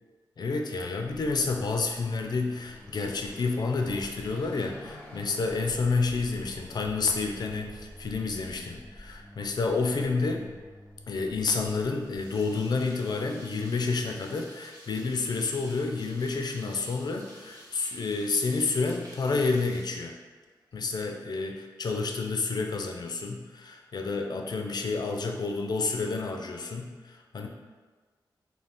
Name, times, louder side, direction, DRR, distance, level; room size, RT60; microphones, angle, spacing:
voice 1, 0.4-10.4 11.1-20.1 20.7-27.5, left 4 dB, 60° left, 2 dB, 0.4 m, -29 dB
Car passing by / Accelerating revving vroom, 1.0-12.3, left 1 dB, 10° left, 0.6 m, -48 dB
sound 1, 11.9-20.7, right 1 dB, 45° right, 1.1 m, -52 dB
2.5 x 2.3 x 3.4 m, 1.4 s
cardioid pair, 55°, 8 cm